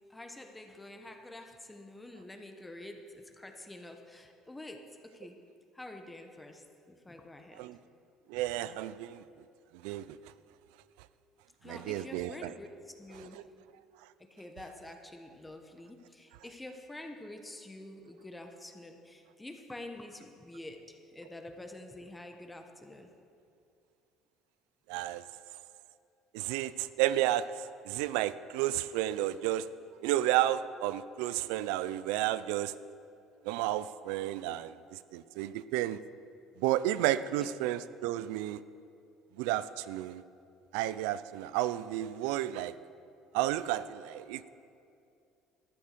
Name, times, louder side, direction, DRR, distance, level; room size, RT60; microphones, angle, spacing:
voice 1, 0.1-5.4 5.7-7.6 11.6-13.5 14.3-23.1, left 1 dB, 10° left, 4 dB, 1.1 m, -47 dB
voice 2, 8.3-9.2 9.7-10.2 11.6-12.5 13.2-13.4 24.9-25.2 26.3-29.7 30.0-32.7 33.4-36.0 36.6-38.6 39.4-40.2 40.7-42.7 43.3-44.5, right 13 dB, 85° right, 16 dB, 0.4 m, -32 dB
13.0 x 8.8 x 6.7 m, 2.5 s
supercardioid pair, 95°, 0 cm